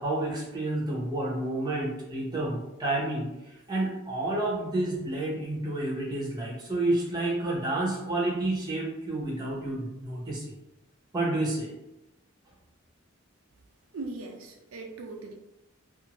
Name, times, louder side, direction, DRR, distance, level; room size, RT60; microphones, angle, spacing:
voice 1, 0.0-3.3 3.7-10.5 11.1-11.7, right 2 dB, 20° right, -4 dB, 0.7 m, -30 dB
voice 2, 13.9-15.3, right 3 dB, 80° right, 1 dB, 0.4 m, -39 dB
2.6 x 2.5 x 2.9 m, 0.92 s
head